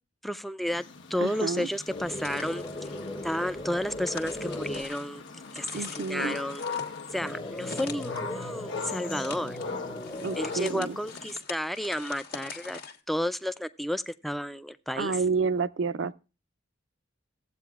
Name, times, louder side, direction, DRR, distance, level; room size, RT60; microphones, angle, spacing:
voice 1, 0.2-0.8 1.1-2.6 3.2-5.2 5.5-6.6 7.1-9.6 10.4-12.8 13.1-15.2, equal, ahead, 0.4 m, -32 dB
sound 1, 0.7-11.4, left 5 dB, 70° left, 1.2 m, -40 dB
voice 2, 1.2-1.7 5.7-6.4 10.2-11.0 14.9-16.1, right 4 dB, 60° right, 0.5 m, -29 dB
sound 2, 1.9-4.8 7.2-10.6, left 1 dB, 25° left, 0.8 m, -38 dB
sound 3, 2.1-13.0, left 5 dB, 50° left, 1.4 m, -44 dB
15.0 x 8.4 x 2.4 m
head